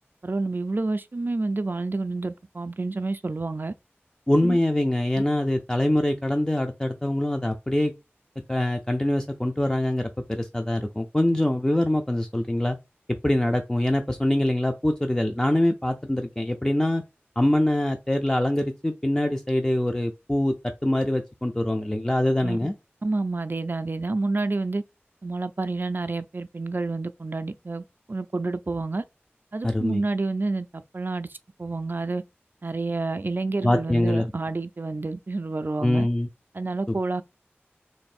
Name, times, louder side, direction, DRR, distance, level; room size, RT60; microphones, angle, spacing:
voice 1, 0.2-3.7 4.4-4.6 22.4-22.6 23.0-24.8 25.2-29.0 29.5-32.2 32.6-36.1 36.5-37.2, right 3 dB, 50° right, 0.4 m, -29 dB
voice 2, 4.3-7.9 8.5-12.8 13.2-17.0 17.4-20.5 20.8-22.7 29.6-30.0 33.6-34.3 35.8-36.3, left 1 dB, 15° left, 0.5 m, -24 dB
3.1 x 2.5 x 4.2 m
wide cardioid pair, 55°, 4 cm